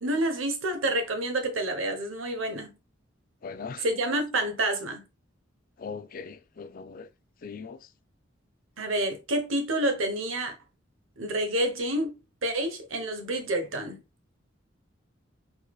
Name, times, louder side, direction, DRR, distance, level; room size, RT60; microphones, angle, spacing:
voice 1, 0.0-2.7 3.8-5.0 8.8-10.6 11.2-14.0, right 1 dB, 90° right, 1.1 m, -28 dB
voice 2, 3.4-3.9 5.8-7.1 7.4-7.9, left 5 dB, 45° left, 0.4 m, -40 dB
4.6 x 4.1 x 2.4 m
head